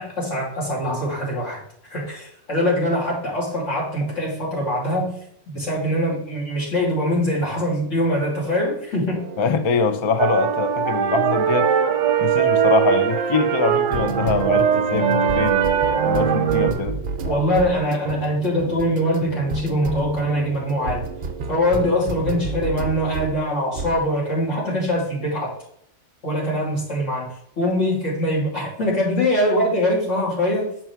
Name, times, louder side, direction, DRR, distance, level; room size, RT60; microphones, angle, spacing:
voice 1, 0.0-1.6 1.9-5.1 5.5-9.2 17.2-21.1 21.5-25.5 26.2-27.3 27.6-30.7, equal, 90° left, -4 dB, 3.0 m, -23 dB
sound 1, 9.1-23.4 23.7-24.0, right 3 dB, 50° right, 0.8 m, -32 dB
voice 2, 9.4-11.8 12.2-15.6 16.0-17.0, left 5 dB, 35° left, 8 dB, 0.5 m, -23 dB
sound 2, 10.2-16.7, right 8 dB, 90° right, 1.0 m, -20 dB
6.0 x 4.6 x 4.5 m, 0.70 s
omnidirectional pair, 1.2 m